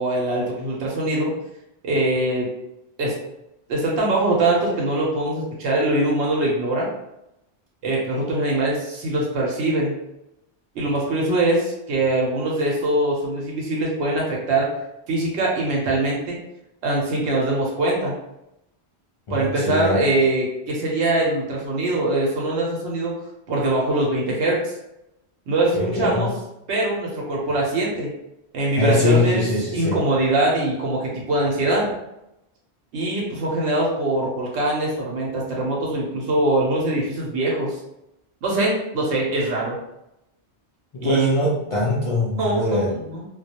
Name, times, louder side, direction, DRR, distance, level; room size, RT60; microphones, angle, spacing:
voice 1, 0.0-1.3 1.8-2.5 3.0-3.1 3.7-6.9 7.8-10.0 10.7-14.7 15.1-16.4 16.8-18.2 19.3-23.1 23.5-24.7 25.5-26.3 26.7-28.1 28.5-29.4 29.7-31.9 32.9-37.8 38.4-39.8 41.0-41.3 42.4-43.3, right 2 dB, 85° right, -3 dB, 0.9 m, -22 dB
voice 2, 19.3-20.1 25.7-26.3 28.8-30.0 40.9-43.0, left 2 dB, 55° left, -6 dB, 0.3 m, -22 dB
2.2 x 2.0 x 2.7 m, 0.87 s
omnidirectional pair, 1.1 m